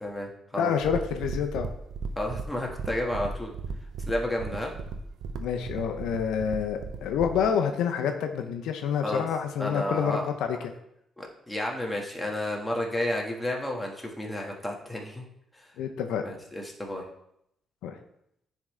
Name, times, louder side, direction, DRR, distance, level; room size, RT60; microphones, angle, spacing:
voice 1, 0.0-0.7 2.2-3.5 4.0-4.7 9.0-9.2 9.6-10.2 11.2-15.2 16.2-17.0, left 1 dB, 5° left, -1 dB, 1.4 m, -31 dB
voice 2, 0.6-1.7 5.4-10.6 15.8-16.2 17.8-18.0, left 7 dB, 90° left, 5 dB, 0.5 m, -28 dB
sound 1, 0.8-7.5, right 4 dB, 75° right, 0.6 m, -36 dB
9.7 x 3.7 x 3.2 m, 0.78 s
cardioid pair, 85°, 0 cm